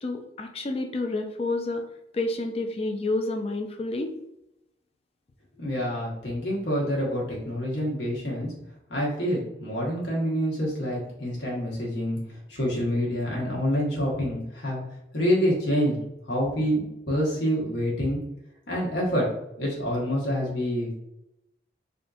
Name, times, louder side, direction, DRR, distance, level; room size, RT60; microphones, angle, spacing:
voice 1, 0.0-1.8 2.1-4.1, left 2 dB, 35° left, 5 dB, 0.3 m, -29 dB
voice 2, 5.6-8.5 8.9-14.8 15.1-16.0 16.3-18.2 18.7-19.3 19.6-20.9, equal, 80° left, -4 dB, 1.2 m, -27 dB
3.6 x 2.6 x 2.4 m, 0.85 s
head